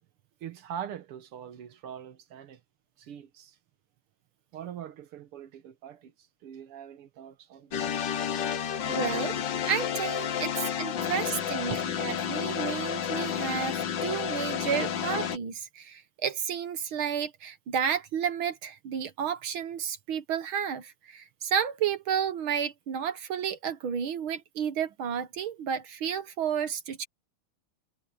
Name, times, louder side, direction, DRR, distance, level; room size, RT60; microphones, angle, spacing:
voice 1, 0.4-2.6 3.0-3.6 4.5-6.1 6.4-7.9 8.9-9.0 10.9-11.0 11.7-12.0, right 9 dB, 90° right, 2.2 m, -42 dB
sound 1, 7.7-15.4, left 8 dB, 60° left, 1.7 m, -31 dB
voice 2, 8.9-10.5 10.8-11.7 12.0-27.1, right 8 dB, 70° right, 2.0 m, -31 dB
omnidirectional pair, 2.4 m